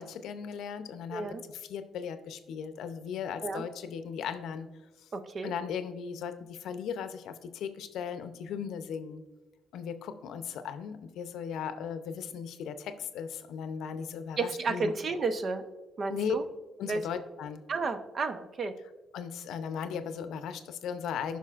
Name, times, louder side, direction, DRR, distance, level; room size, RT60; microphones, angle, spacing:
voice 1, 0.0-4.7 5.0-5.1 5.4-9.2 9.7-14.9 16.1-16.4 16.8-17.6 19.1-21.4, left 7 dB, 80° left, 10 dB, 0.6 m, -37 dB
voice 2, 1.1-1.4 3.4-3.6 5.1-5.5 14.4-15.6 16.0-16.4 16.9-17.0 17.7-18.7, right 3 dB, 45° right, 8 dB, 0.8 m, -32 dB
15.0 x 5.7 x 2.5 m, 1.2 s
cardioid pair, 90°, 0 cm